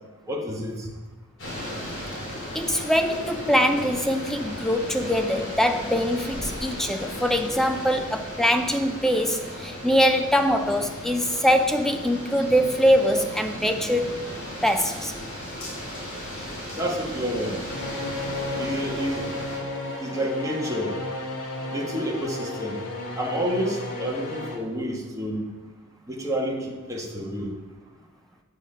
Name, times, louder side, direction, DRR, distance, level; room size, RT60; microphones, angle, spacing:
voice 1, 0.3-0.9 16.7-17.6 18.6-19.3 20.0-21.0 21.7-22.8 23.2-25.5 26.1-27.5, equal, 15° right, 1.4 m, -29 dB
sound 1, 1.4-19.6, equal, 55° left, 3.1 m, -36 dB
voice 2, 2.5-14.2 14.6-15.1, equal, ahead, 0.5 m, -23 dB
sound 2, 17.7-24.6, left 2 dB, 90° left, 1.7 m, -33 dB
8.3 x 6.6 x 5.4 m
head